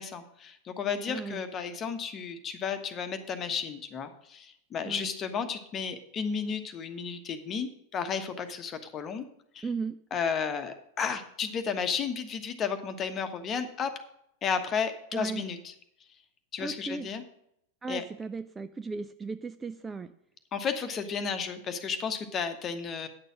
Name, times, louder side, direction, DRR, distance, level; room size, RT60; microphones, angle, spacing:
voice 1, 0.0-9.3 9.5-9.7 10.1-13.9 14.4-15.7 16.5-17.2 17.9-18.0 20.5-23.1, left 6 dB, 25° left, 8 dB, 1.2 m, -33 dB
voice 2, 1.1-1.4 4.8-5.1 9.6-10.0 15.1-15.4 16.6-17.1 17.8-20.1, right 4 dB, 15° right, 10 dB, 0.4 m, -36 dB
9.8 x 6.8 x 6.2 m, 0.75 s
figure-of-eight pair, 90°, 0 cm